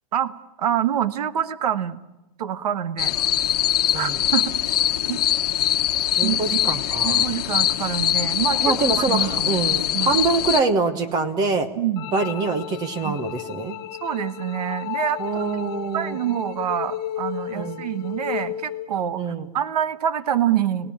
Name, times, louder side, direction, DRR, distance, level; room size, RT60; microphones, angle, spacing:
voice 1, 0.6-2.0 2.4-3.1 3.9-4.5 5.1-5.2 6.2-9.6 9.9-10.1 11.7-12.1 13.0-13.2 14.0-15.6 15.9-20.9, right 10 dB, 85° right, 13 dB, 1.4 m, -26 dB
sound 1, 3.0-10.6, left 12 dB, 75° left, 1.1 m, -22 dB
voice 2, 6.1-7.2 8.6-11.7 12.1-13.8 15.2-16.2 17.5-17.9 19.2-19.4, right 4 dB, 20° right, 11 dB, 1.1 m, -24 dB
sound 2, 12.0-18.9, left 13 dB, 35° left, 0.8 m, -33 dB
30.0 x 17.5 x 8.7 m, 0.98 s
supercardioid pair, 170°, 20 cm